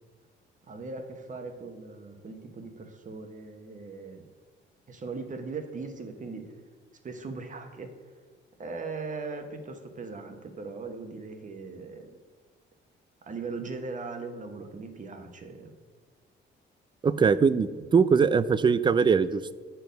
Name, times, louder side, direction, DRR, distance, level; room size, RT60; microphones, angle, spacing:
voice 1, 0.7-4.3 4.9-6.6 7.0-7.9 8.6-12.2 13.2-15.7, right 4 dB, 40° right, 5 dB, 1.1 m, -39 dB
voice 2, 17.0-19.5, right 5 dB, 25° right, 15 dB, 0.4 m, -22 dB
8.8 x 4.6 x 5.1 m, 1.4 s
cardioid pair, 90°, 20 cm